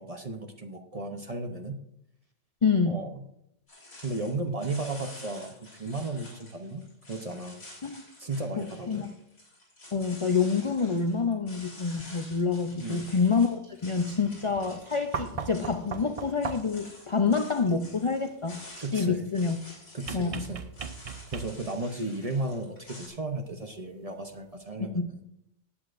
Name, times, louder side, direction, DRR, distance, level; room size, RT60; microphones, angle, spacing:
voice 1, 0.0-1.8 2.9-3.1 4.0-6.8 7.1-7.6 8.2-9.1 12.8-13.1 18.8-19.3 19.9-20.6 21.3-25.2, right 2 dB, 35° right, 5 dB, 0.7 m, -34 dB
voice 2, 2.6-3.0 7.8-8.0 8.6-9.1 9.9-19.6 20.1-20.5 24.9-25.1, left 5 dB, 50° left, 6 dB, 0.3 m, -27 dB
sound 1, 3.7-23.1, left 1 dB, 75° left, 4.4 m, -49 dB
sound 2, 15.1-16.9 20.1-21.8 23.3-23.4, right 6 dB, 60° right, 0.3 m, -37 dB
19.0 x 8.6 x 2.6 m, 0.77 s
omnidirectional pair, 1.4 m